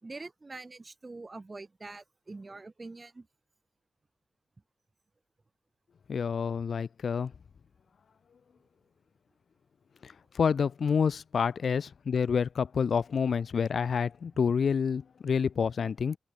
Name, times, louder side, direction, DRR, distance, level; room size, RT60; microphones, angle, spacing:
voice 1, 0.0-3.3, right 3 dB, 25° right, 3.1 m, -44 dB
voice 2, 6.1-7.3 10.0-16.2, left 6 dB, 60° left, 0.4 m, -28 dB
wide cardioid pair, 165°, 0 cm